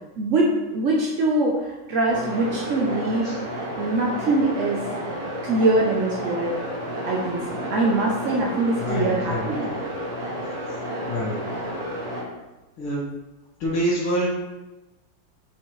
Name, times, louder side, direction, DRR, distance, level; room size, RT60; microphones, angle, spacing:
voice 1, 0.2-3.3 3.8-4.8 5.4-6.6 7.1-9.7, right 2 dB, 65° right, -2 dB, 0.7 m, -23 dB
sound 1, 2.1-12.2, equal, 50° right, 1.9 m, -31 dB
voice 2, 8.8-9.8 11.1-11.4 12.8-13.0 13.6-14.3, equal, 75° left, -10 dB, 2.4 m, -26 dB
6.4 x 5.7 x 3.2 m, 1.1 s
omnidirectional pair, 2.3 m